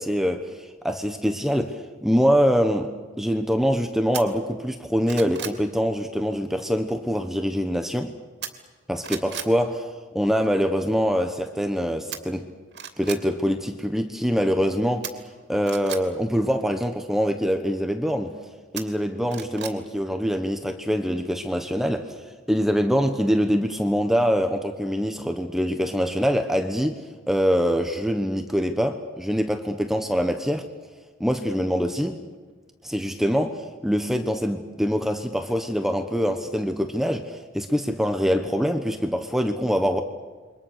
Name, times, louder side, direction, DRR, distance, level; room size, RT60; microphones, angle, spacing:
voice 1, 0.0-8.1 8.9-12.5 13.0-15.1 15.5-18.3 18.7-22.2 22.5-27.0 27.3-30.6 31.2-32.2 32.8-40.0, equal, ahead, 6 dB, 1.1 m, -24 dB
sound 1, 4.1-4.2 4.7-5.6 8.4-8.8 9.0-9.5 12.1-12.2 12.7-13.2 15.0-16.0 18.8-19.8 20.1-20.2, right 9 dB, 60° right, 2.8 m, -35 dB
28.5 x 24.5 x 6.7 m, 1.4 s
head